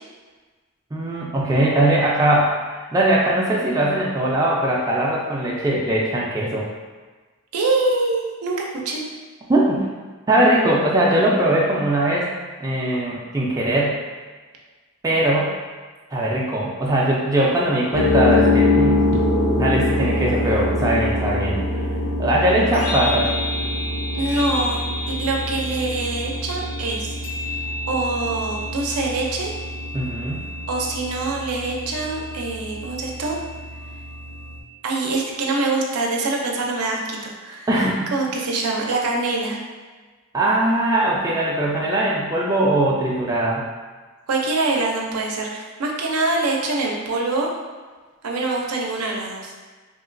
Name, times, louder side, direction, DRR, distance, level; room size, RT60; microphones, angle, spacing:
voice 1, 0.9-2.5 2.9-6.7 9.5-9.8 10.3-12.3 12.6-14.0 15.0-15.5 16.1-19.1 19.6-21.6 22.2-23.3 29.9-30.4 37.7-38.1 40.3-43.6, right 1 dB, 15° right, -4 dB, 0.3 m, -20 dB
voice 2, 7.5-9.0 24.1-24.8 25.1-27.1 27.4-27.5 27.9-29.5 30.7-33.4 34.8-37.7 38.1-39.6 44.3-47.5 48.2-49.5, right 3 dB, 85° right, -1 dB, 0.5 m, -24 dB
sound 1, 17.9-34.6, left 2 dB, 70° left, 0.5 m, -24 dB
2.9 x 2.8 x 2.5 m, 1.4 s
head